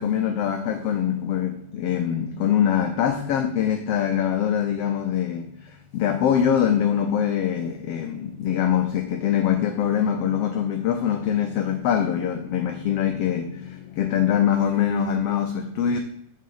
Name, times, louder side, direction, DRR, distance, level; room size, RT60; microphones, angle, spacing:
voice 1, 0.0-16.0, left 9 dB, 85° left, 1.3 m, -23 dB
6.7 x 6.6 x 4.8 m
omnidirectional pair, 3.4 m